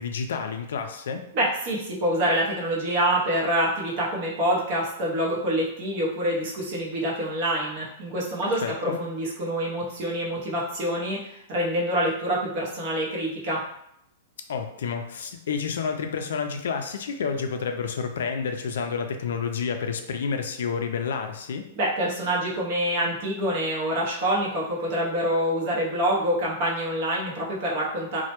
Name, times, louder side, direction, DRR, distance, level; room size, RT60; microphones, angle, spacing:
voice 1, 0.0-1.2 8.4-9.0 14.5-21.7, left 6 dB, 80° left, 5 dB, 0.3 m, -29 dB
voice 2, 1.3-13.6 21.8-28.2, right 1 dB, 40° right, -4 dB, 0.6 m, -26 dB
2.1 x 2.1 x 2.8 m, 0.76 s
supercardioid pair, 175°, 0 cm